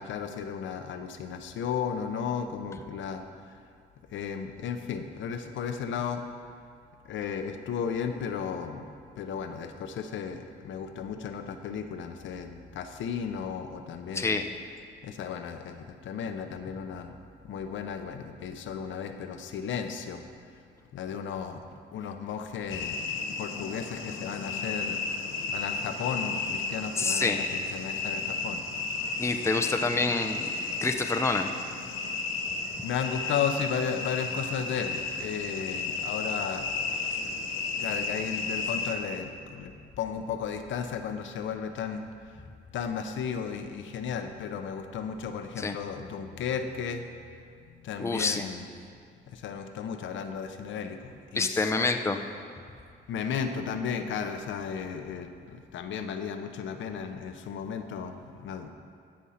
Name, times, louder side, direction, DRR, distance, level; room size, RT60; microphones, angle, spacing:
voice 1, 0.0-3.2 4.1-6.2 7.1-8.8 9.2-14.4 15.0-17.1 17.4-20.2 20.9-21.6 21.9-22.9 23.4-25.0 25.5-28.6 32.8-36.7 37.8-42.4 42.7-47.1 47.8-48.7 49.3-51.7 53.1-58.7, left 7 dB, 70° left, 6 dB, 0.8 m, -34 dB
voice 2, 14.1-14.5 27.0-27.4 29.2-30.5 30.8-31.5 45.6-45.8 48.0-48.5 51.3-52.2, left 3 dB, 15° left, 5 dB, 0.6 m, -27 dB
sound 1, 22.7-38.9, left 4 dB, 90° left, 1.1 m, -33 dB
13.5 x 5.4 x 5.7 m, 2.3 s
cardioid pair, 90°, 20 cm